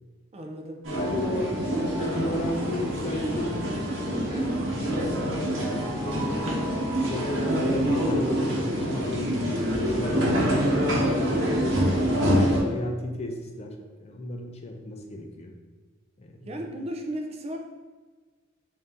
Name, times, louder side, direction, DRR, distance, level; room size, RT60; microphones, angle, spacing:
voice 1, 0.3-0.8 11.4-11.7 16.5-17.6, right 1 dB, 35° right, 3 dB, 0.4 m, -35 dB
sound 1, 0.8-12.6, equal, 85° right, 1.0 m, -26 dB
voice 2, 0.9-1.6 1.9-3.6 4.3-4.6 5.2-6.5 7.1-10.6 11.9-15.5 16.2-16.6, left 1 dB, 35° left, 3 dB, 0.4 m, -34 dB
3.9 x 2.6 x 3.5 m, 1.4 s
head